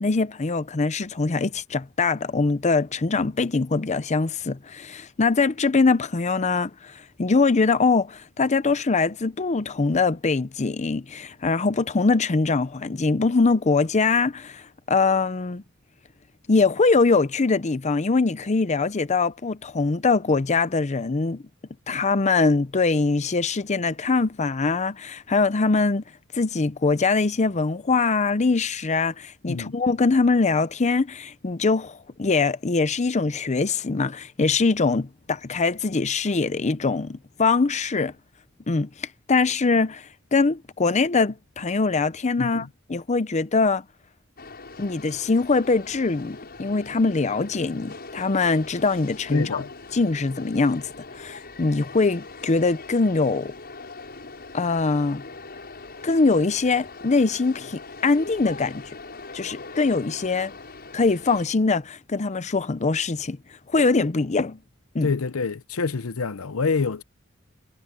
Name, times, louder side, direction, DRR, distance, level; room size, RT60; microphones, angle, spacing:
voice 1, 0.0-15.6 16.5-21.4 21.9-26.0 26.3-38.1 38.7-43.8 44.8-49.6 49.9-53.5 54.5-55.2 56.0-59.0 59.3-60.5 60.9-63.4 63.7-64.6 64.9-65.1, left 4 dB, 35° left, 0.6 m, -23 dB
voice 2, 42.4-42.7 49.3-49.7 65.0-67.0, left 4 dB, 85° left, 0.8 m, -26 dB
sound 1, 44.4-61.5, left 3 dB, 50° left, 7.4 m, -41 dB
head